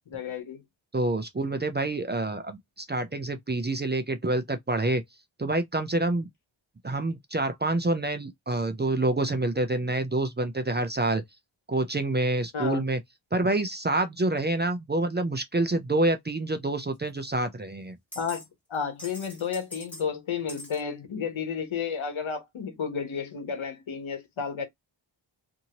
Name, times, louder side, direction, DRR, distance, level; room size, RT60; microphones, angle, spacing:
voice 1, 0.1-0.6 12.5-12.8 18.2-18.4 18.7-24.7, left 6 dB, 80° left, 1.0 m, -32 dB
voice 2, 0.9-5.0 5.4-6.3 6.8-11.2 11.7-13.0 13.3-17.9, right 2 dB, 25° right, 0.4 m, -27 dB
sound 1, 17.1-17.2 18.1-18.5 18.7-20.1 20.5-20.8, left 1 dB, 5° left, 1.4 m, -43 dB
2.7 x 2.7 x 2.8 m
wide cardioid pair, 100°, 47 cm